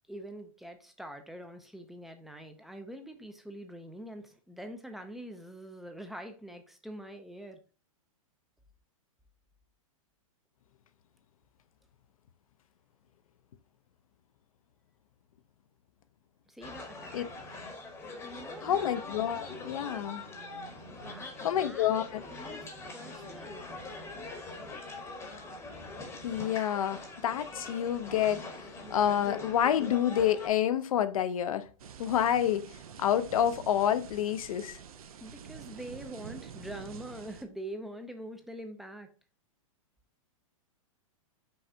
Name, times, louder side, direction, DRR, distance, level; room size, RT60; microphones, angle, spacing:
voice 1, 0.1-7.6 16.5-17.3 18.2-18.9 20.9-21.9 22.3-23.7 35.2-39.1, right 1 dB, ahead, 0.4 m, -45 dB
sound 1, 16.6-30.5, left 2 dB, 15° left, 0.8 m, -43 dB
voice 2, 18.6-20.2 21.4-22.2 26.2-28.4 28.9-31.7 32.0-32.7 33.0-34.8, left 10 dB, 75° left, 0.5 m, -28 dB
sound 2, 31.8-37.4, right 7 dB, 85° right, 0.6 m, -47 dB
5.5 x 3.2 x 2.6 m
hypercardioid pair, 145°, 18 cm